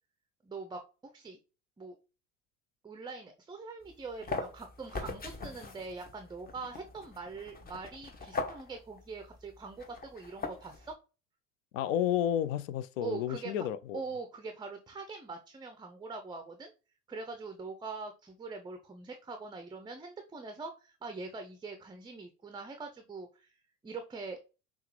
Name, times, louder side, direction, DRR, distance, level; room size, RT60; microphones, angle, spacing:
voice 1, 0.4-1.4 1.8-2.0 2.8-10.9 13.0-13.7 13.9-16.7 17.1-23.6 23.8-24.4, right 4 dB, 10° right, 0.5 m, -43 dB
sound 1, 3.8-10.9, left 3 dB, 20° left, 0.9 m, -41 dB
voice 2, 11.7-14.0, left 10 dB, 70° left, 0.6 m, -31 dB
5.6 x 2.4 x 3.1 m
hypercardioid pair, 70°, 41 cm